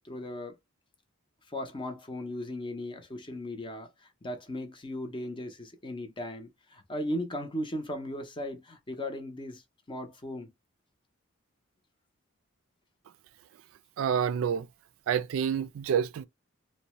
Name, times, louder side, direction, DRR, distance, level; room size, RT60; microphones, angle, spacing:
voice 1, 0.0-0.6 1.5-9.6 9.9-10.5, left 1 dB, 25° left, 0.6 m, -37 dB
voice 2, 14.0-14.7 15.1-16.3, right 8 dB, 70° right, 0.3 m, -28 dB
2.6 x 2.1 x 2.9 m
head